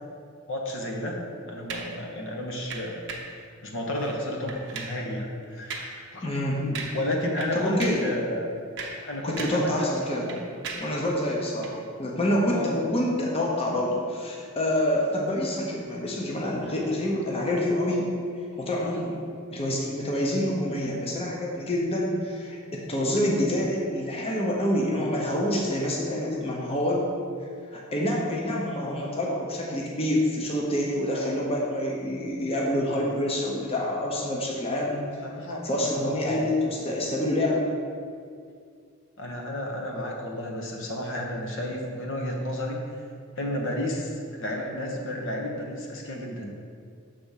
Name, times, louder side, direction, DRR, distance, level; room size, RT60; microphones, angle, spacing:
voice 1, 0.5-1.2 1.5-3.0 3.6-6.3 6.6-8.5 9.0-10.4 12.5-12.7 18.8-19.0 35.2-36.4 39.2-42.8 43.4-46.6, left 1 dB, 65° left, 0 dB, 0.9 m, -32 dB
sound 1, 1.7-2.0 2.7-3.4 3.9-4.2 4.5-5.0 5.7-6.0 6.3-6.4 6.8-7.1 7.4-8.1 8.6-9.7 10.0-11.0 11.6-11.8, right 4 dB, 60° right, 0.7 m, -37 dB
voice 2, 6.2-6.6 7.5-8.0 9.2-10.3 10.7-18.1 18.6-19.2 19.5-27.0 27.7-35.0 35.5-37.6, left 1 dB, 30° left, -2 dB, 0.8 m, -27 dB
6.8 x 3.5 x 5.6 m, 2.2 s
head